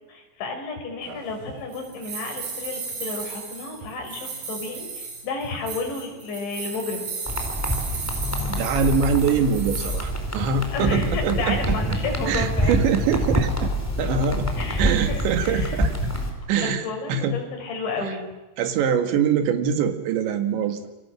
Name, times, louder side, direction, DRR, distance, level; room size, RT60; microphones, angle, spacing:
voice 1, 0.1-7.1 10.7-12.8 14.6-15.8 16.6-18.3, left 3 dB, 70° left, 3 dB, 7.4 m, -31 dB
sound 1, 1.1-10.0, right 5 dB, 45° right, 9.3 m, -35 dB
sound 2, 7.3-16.3, equal, 5° left, 3.7 m, -26 dB
voice 2, 8.5-11.8 12.3-13.7 14.0-14.5 14.8-16.1 16.5-16.8 17.1-17.4 18.0-18.1 18.6-20.8, right 6 dB, 75° right, 7 dB, 4.2 m, -23 dB
28.5 x 24.5 x 7.8 m, 1.1 s
omnidirectional pair, 5.4 m